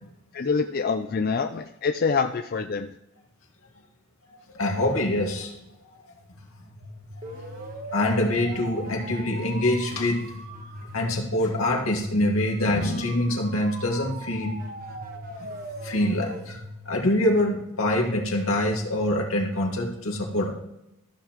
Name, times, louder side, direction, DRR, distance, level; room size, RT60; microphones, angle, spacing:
voice 1, 0.3-2.9, left 5 dB, 45° left, 7 dB, 0.4 m, -26 dB
voice 2, 4.5-5.6 7.9-10.3 10.9-14.6 15.4-15.5 15.8-16.6 16.9-20.5, left 1 dB, 80° left, 0 dB, 2.0 m, -25 dB
sound 1, 6.2-18.0, equal, 40° right, 1.3 m, -40 dB
14.0 x 6.8 x 3.0 m, 0.86 s
head